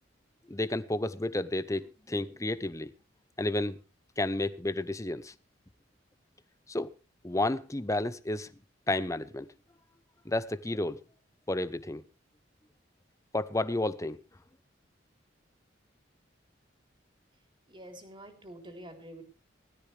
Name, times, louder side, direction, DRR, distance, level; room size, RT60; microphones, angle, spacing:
voice 1, 0.5-2.9 3.4-3.8 4.2-5.3 6.7-6.9 7.2-8.5 8.9-9.5 10.2-11.0 11.5-12.0 13.3-14.2, left 2 dB, 15° left, 0.7 m, -31 dB
voice 2, 17.7-19.2, right 1 dB, 25° right, 3.6 m, -47 dB
19.5 x 13.5 x 3.4 m
head